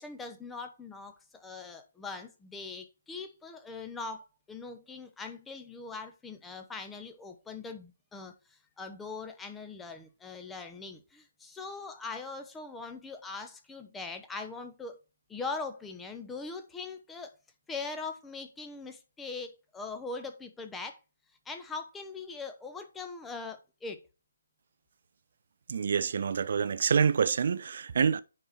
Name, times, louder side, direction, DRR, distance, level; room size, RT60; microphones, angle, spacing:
voice 1, 0.0-15.0 15.3-17.3 17.7-21.0 21.4-24.0, left 4 dB, 5° left, 0.9 m, -41 dB
voice 2, 25.7-28.2, right 6 dB, 45° right, 0.5 m, -27 dB
9.9 x 4.3 x 4.7 m
figure-of-eight pair, 145°, 0 cm